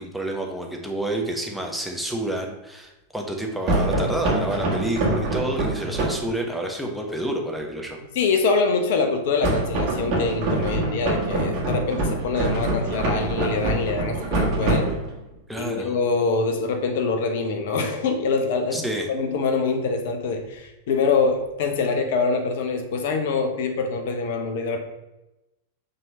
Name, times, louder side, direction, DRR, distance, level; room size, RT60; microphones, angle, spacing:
voice 1, 0.0-8.0 15.5-15.9 18.7-19.1, right 1 dB, ahead, 0 dB, 1.1 m, -29 dB
sound 1, 3.7-6.3 9.4-15.3, right 2 dB, 45° right, 1.8 m, -25 dB
voice 2, 8.1-14.9 15.6-24.8, left 4 dB, 55° left, 6 dB, 0.9 m, -24 dB
5.4 x 3.7 x 5.4 m, 0.98 s
figure-of-eight pair, 90°, 0 cm